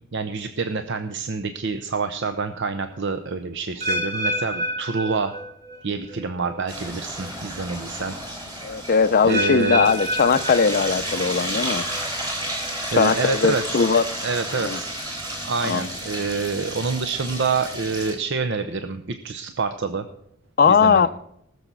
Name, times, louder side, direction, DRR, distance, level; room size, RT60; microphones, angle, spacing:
voice 1, 0.1-5.3 5.8-8.1 9.2-9.9 12.9-13.9 14.2-14.9 15.4-20.0 20.7-21.1, right 4 dB, 55° right, 0.7 m, -27 dB
sound 1, 3.8-5.8 6.1-6.5 7.2-7.3 9.3-11.2 11.6-12.0 12.7-12.8, equal, 40° right, 2.7 m, -28 dB
sound 2, 6.7-18.1, right 1 dB, 20° right, 4.1 m, -32 dB
voice 2, 8.6-11.9 12.9-14.0 14.5-14.8 15.6-15.9 20.6-21.1, left 5 dB, 45° left, 0.5 m, -19 dB
19.0 x 6.9 x 6.1 m
head